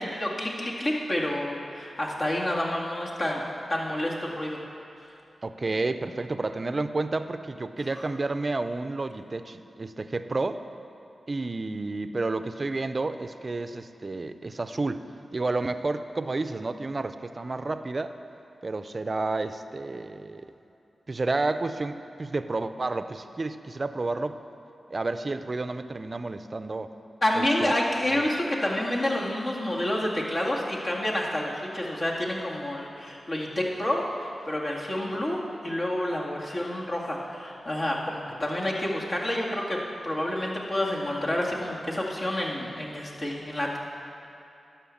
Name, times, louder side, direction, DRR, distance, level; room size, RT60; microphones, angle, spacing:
voice 1, 0.0-3.4 3.7-4.6 8.0-8.1 27.2-43.8, left 1 dB, 55° left, -4 dB, 2.1 m, -29 dB
voice 2, 5.4-10.6 11.3-15.0 15.3-18.1 18.6-20.5 21.1-24.4 24.9-26.9 27.4-27.7 28.1-28.3, right 3 dB, 45° right, 10 dB, 0.5 m, -30 dB
11.5 x 5.7 x 7.1 m, 2.8 s
cardioid pair, 45°, 0 cm